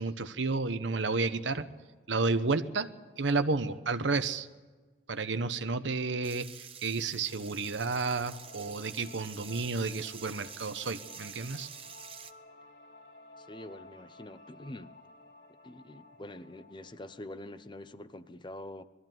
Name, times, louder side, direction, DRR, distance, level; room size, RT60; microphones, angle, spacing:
voice 1, 0.0-1.7 2.1-2.9 3.2-4.5 5.1-11.7, right 3 dB, 85° right, 1.0 m, -31 dB
sound 1, 6.2-12.3, right 7 dB, 30° right, 1.0 m, -48 dB
sound 2, 7.3-18.3, left 2 dB, 70° left, 3.8 m, -55 dB
voice 2, 13.4-14.9 15.6-18.8, left 1 dB, 25° left, 0.8 m, -45 dB
21.0 x 14.0 x 9.2 m
head